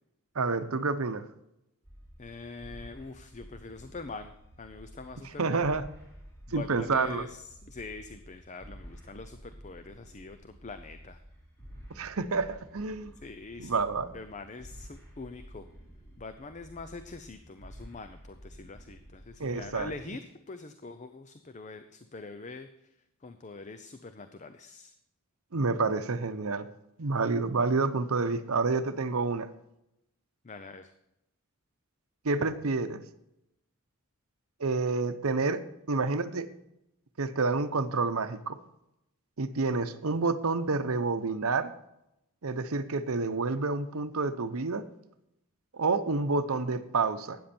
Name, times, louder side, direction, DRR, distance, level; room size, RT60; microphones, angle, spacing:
voice 1, 0.4-1.3 5.4-5.8 6.5-7.3 12.0-13.1 13.6-14.1 19.4-19.9 25.5-26.7 27.0-29.5 32.2-33.0 34.6-35.6 35.9-36.5 37.2-38.6 39.4-41.7 42.4-44.9 45.7-47.4, right 4 dB, 70° right, 11 dB, 0.8 m, -29 dB
sound 1, 1.8-20.0, equal, 10° left, 3.7 m, -51 dB
voice 2, 2.2-4.3 4.6-5.7 6.5-11.2 13.2-13.8 14.1-15.7 16.2-22.9 23.2-24.9 30.4-30.9, left 3 dB, 30° left, 10 dB, 0.5 m, -44 dB
12.5 x 9.3 x 4.4 m, 0.84 s
head